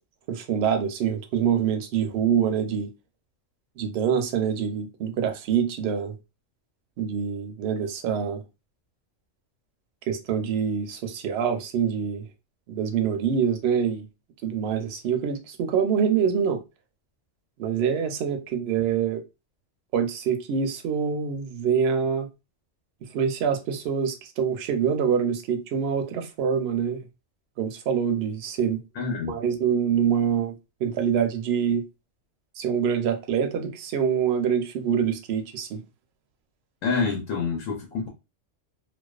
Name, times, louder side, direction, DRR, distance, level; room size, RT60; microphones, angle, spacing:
voice 1, 0.3-2.9 3.8-6.1 7.0-8.4 10.1-12.3 12.7-14.1 14.4-16.6 17.6-19.2 19.9-22.3 23.1-27.1 27.6-28.8 29.3-31.8 32.6-35.8, right 7 dB, 65° right, 0.7 m, -25 dB
voice 2, 29.0-29.4 36.8-38.1, left 5 dB, 80° left, 1.0 m, -27 dB
2.4 x 2.2 x 2.3 m
omnidirectional pair, 1.3 m